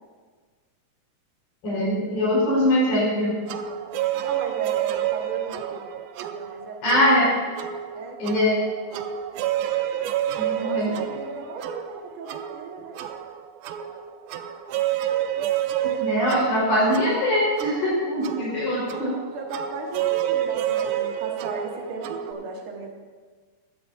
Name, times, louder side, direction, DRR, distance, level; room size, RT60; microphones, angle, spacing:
voice 1, 1.6-3.4 6.8-7.4 8.2-8.6 10.4-10.9 16.0-19.1, left 1 dB, 70° left, -7 dB, 6.0 m, -22 dB
sound 1, 3.5-22.3, right 11 dB, 80° right, 2.3 m, -29 dB
voice 2, 4.2-5.9 6.3-7.3 7.9-8.2 10.5-13.0 19.3-23.0, right 3 dB, 55° right, -1 dB, 1.6 m, -36 dB
15.0 x 12.0 x 2.6 m, 1.5 s
omnidirectional pair, 4.5 m